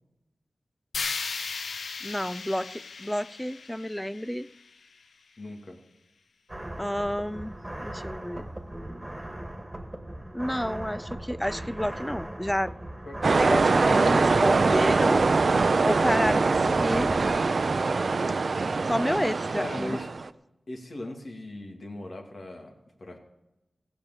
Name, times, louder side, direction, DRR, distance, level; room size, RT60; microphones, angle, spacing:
sound 1, 0.9-5.0, left 4 dB, 85° left, 0.6 m, -36 dB
voice 1, 2.0-4.5 6.8-7.5 7.8-8.5 10.3-12.8 13.4-15.2 15.8-17.2 18.9-20.0, equal, 5° left, 0.4 m, -30 dB
voice 2, 5.4-5.8 13.0-14.7 15.7-16.0 19.6-20.1 20.7-22.7 23.0-23.2, left 1 dB, 60° left, 2.5 m, -39 dB
sound 2, 6.5-17.4, right 1 dB, 25° right, 1.9 m, -38 dB
sound 3, 13.2-20.3, right 4 dB, 70° right, 0.5 m, -23 dB
16.0 x 6.8 x 8.2 m
cardioid pair, 45°, 0 cm